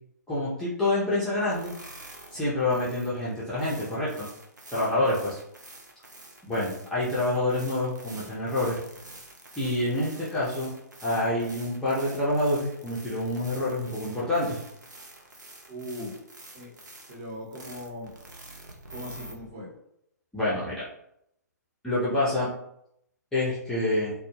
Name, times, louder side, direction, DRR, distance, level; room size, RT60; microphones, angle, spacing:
voice 1, 0.3-1.7 2.3-4.3 4.7-5.4 6.5-8.8 9.6-10.7 11.0-14.6 20.3-20.8 21.8-22.5 23.3-24.1, left 1 dB, 5° left, -10 dB, 0.5 m, -27 dB
sound 1, 1.5-19.3, right 2 dB, 80° right, 0.6 m, -47 dB
voice 2, 4.7-5.0 15.7-16.1 16.5-16.7 17.1-18.2 18.8-19.7, left 1 dB, 35° right, -4 dB, 0.9 m, -39 dB
2.2 x 2.1 x 3.0 m, 0.77 s
figure-of-eight pair, 120°, 10 cm